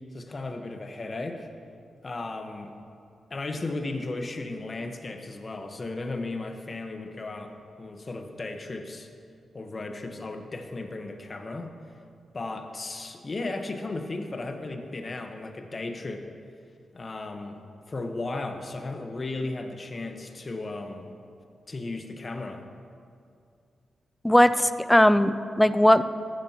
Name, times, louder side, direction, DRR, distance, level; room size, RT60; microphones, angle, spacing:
voice 1, 0.1-1.5 2.0-2.7 3.3-9.1 9.5-11.7 12.3-16.2 16.9-17.6 17.9-21.1 21.7-22.6, left 2 dB, 45° left, 5 dB, 1.2 m, -35 dB
voice 2, 24.2-26.0, left 1 dB, 10° left, 13 dB, 0.5 m, -19 dB
14.5 x 10.5 x 3.0 m, 2.4 s
supercardioid pair, 50°, 0 cm